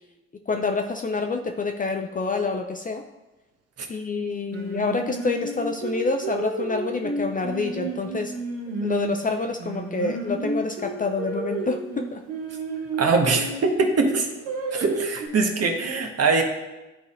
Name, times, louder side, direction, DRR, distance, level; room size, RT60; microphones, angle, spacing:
voice 1, 0.5-3.0 3.9-8.3 8.8-12.2, left 4 dB, 25° left, 4 dB, 0.5 m, -27 dB
Singing, 4.5-9.2 9.6-13.6 14.1-15.3, right 3 dB, 85° right, 1.1 m, -31 dB
voice 2, 13.0-14.3 14.7-16.4, right 4 dB, 45° right, 3 dB, 1.3 m, -22 dB
11.5 x 4.0 x 2.6 m, 1.1 s
hypercardioid pair, 55°, 36 cm